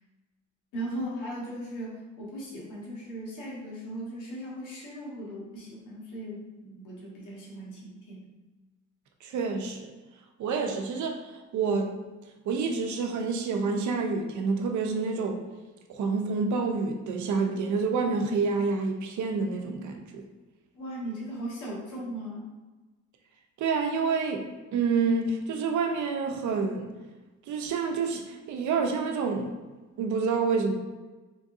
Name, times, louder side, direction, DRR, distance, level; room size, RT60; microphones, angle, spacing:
voice 1, 0.7-8.3 20.7-22.5, right 1 dB, 85° left, -4 dB, 1.4 m, -38 dB
voice 2, 9.2-9.9 10.4-11.2 11.5-11.9 12.5-15.4 15.9-20.2 23.6-26.9 27.5-29.5 30.0-30.7, right 4 dB, 75° right, 3 dB, 0.7 m, -28 dB
3.8 x 3.6 x 2.7 m, 1.2 s
cardioid pair, 90°, 30 cm